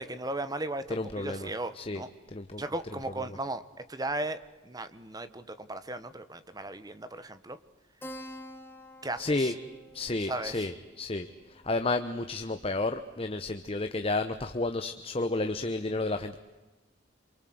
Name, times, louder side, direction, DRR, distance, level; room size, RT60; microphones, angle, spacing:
voice 1, 0.0-2.1 2.6-3.6 3.9-7.6 9.0-9.5 10.3-10.7, right 2 dB, 20° right, 12 dB, 1.3 m, -36 dB
voice 2, 0.9-1.5 1.7-2.0 2.3-2.6 9.2-9.5 9.9-16.4, left 2 dB, 30° left, 7 dB, 1.0 m, -31 dB
Keyboard (musical), 8.0-13.0, equal, 10° left, 2.5 m, -49 dB
27.5 x 24.5 x 7.9 m, 1.1 s
head